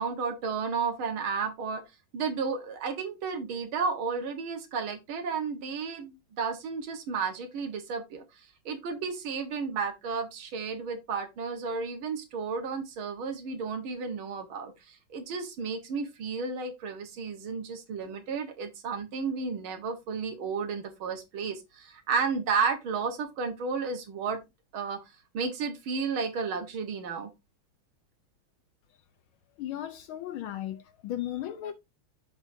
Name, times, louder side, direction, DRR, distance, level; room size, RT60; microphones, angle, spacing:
voice 1, 0.0-1.8 2.1-8.2 8.7-24.4 24.7-25.0 25.3-27.3, right 5 dB, 70° right, 2.2 m, -32 dB
voice 2, 29.6-31.7, left 12 dB, 75° left, 1.4 m, -36 dB
7.3 x 6.0 x 2.7 m
omnidirectional pair, 2.3 m